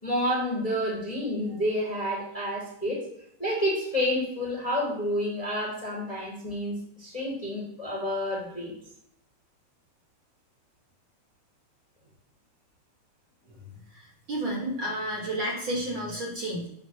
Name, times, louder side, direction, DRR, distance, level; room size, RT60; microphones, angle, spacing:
voice 1, 0.0-3.0 3.4-8.7 13.6-13.7, equal, 15° left, -4 dB, 2.1 m, -29 dB
voice 2, 13.9-16.7, right 1 dB, 45° right, -4 dB, 2.3 m, -31 dB
7.8 x 3.9 x 6.3 m, 0.73 s
omnidirectional pair, 3.4 m